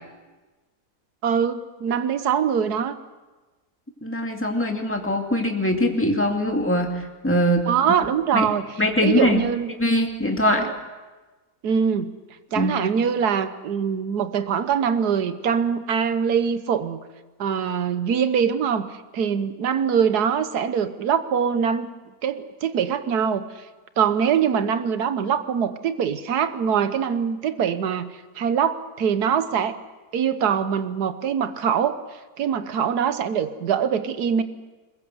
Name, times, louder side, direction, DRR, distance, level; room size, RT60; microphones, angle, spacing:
voice 1, 1.2-2.9 7.7-8.6 9.0-9.7 10.6-10.7 11.6-12.1 12.5-17.0 17.4-18.9 19.1-21.9 22.2-23.4 24.0-28.1 28.4-29.8 30.1-32.0 32.4-34.4, right 7 dB, 85° right, 11 dB, 1.6 m, -23 dB
voice 2, 4.0-7.7 8.3-8.5 8.8-9.5 9.8-10.7 12.6-12.9, left 1 dB, 10° left, 2 dB, 2.4 m, -22 dB
22.0 x 21.0 x 7.9 m, 1.2 s
omnidirectional pair, 1.6 m